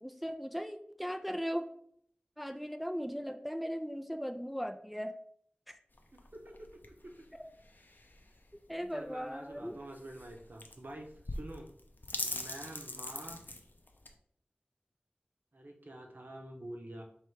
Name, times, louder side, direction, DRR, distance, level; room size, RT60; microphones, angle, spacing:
voice 1, 0.0-1.7 2.4-5.1 8.7-9.8, equal, ahead, 7 dB, 0.4 m, -38 dB
sound 1, 5.9-14.1, left 2 dB, 65° left, 0.6 m, -43 dB
voice 2, 6.1-7.1 8.9-11.7 12.2-13.5 15.5-17.0, right 1 dB, 60° right, 2 dB, 0.9 m, -47 dB
3.3 x 3.3 x 4.7 m, 0.66 s
wide cardioid pair, 50°, 4 cm